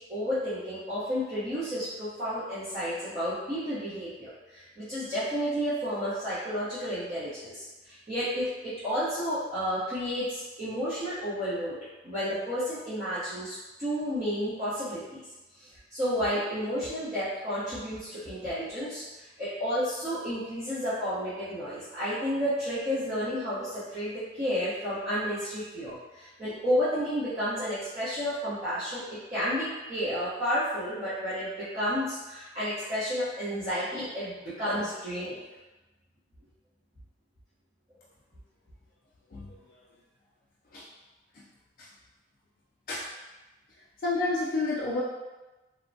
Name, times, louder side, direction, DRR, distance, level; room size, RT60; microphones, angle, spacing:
voice 1, 0.1-11.8 12.0-15.2 15.6-19.0 19.4-29.0 29.3-35.4, equal, 35° right, -15 dB, 0.8 m, -31 dB
voice 2, 44.0-45.0, left 2 dB, 50° left, -5 dB, 0.3 m, -29 dB
3.1 x 2.1 x 2.6 m, 1.1 s
head